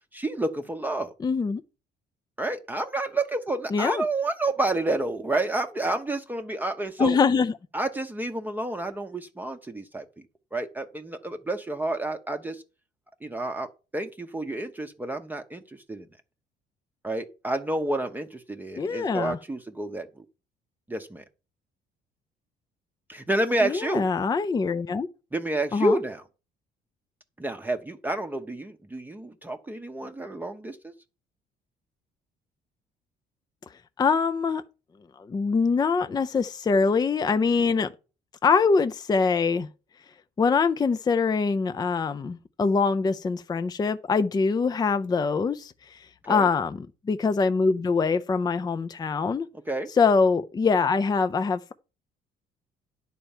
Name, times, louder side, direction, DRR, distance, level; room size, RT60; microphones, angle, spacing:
voice 1, 0.1-1.1 2.4-7.2 7.7-10.1 10.5-12.6 13.2-13.7 13.9-16.1 17.0-20.2 20.9-21.2 23.1-24.1 25.3-26.2 27.4-30.9 46.3-46.5 49.7-49.9, right 2 dB, 10° right, 0.8 m, -29 dB
voice 2, 1.2-1.6 3.7-4.0 7.0-7.5 18.8-19.4 23.6-25.1 25.7-26.0 34.0-34.6 35.2-37.9 38.4-39.7 40.4-49.5 50.0-51.7, left 5 dB, 25° left, 0.5 m, -24 dB
10.0 x 4.5 x 7.1 m
cardioid pair, 110°, 17 cm